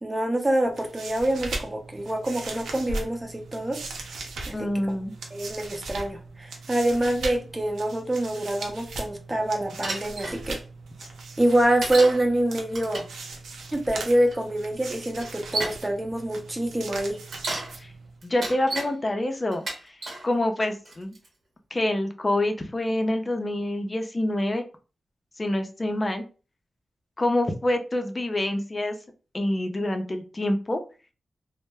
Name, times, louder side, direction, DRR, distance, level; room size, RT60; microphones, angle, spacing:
voice 1, 0.0-3.8 4.5-4.7 5.3-10.6 11.4-13.0 13.7-17.2, right 1 dB, 20° right, 2 dB, 0.7 m, -25 dB
sound 1, 0.6-18.2, right 3 dB, 90° right, 0.5 m, -39 dB
voice 2, 4.5-5.1 17.8-17.9 18.2-19.6 20.2-21.1 21.7-24.6 25.4-26.2 27.2-28.9 29.3-30.8, left 1 dB, 35° left, 5 dB, 0.5 m, -26 dB
Bicycle, 9.8-10.4 11.8-12.2 12.7-13.2 14.3-14.4 15.1-15.8 17.1-17.7 18.2-18.9 19.5-20.2 20.9-21.3, right 2 dB, 70° right, 0.8 m, -32 dB
2.1 x 2.0 x 3.3 m, 0.35 s
cardioid pair, 55°, 0 cm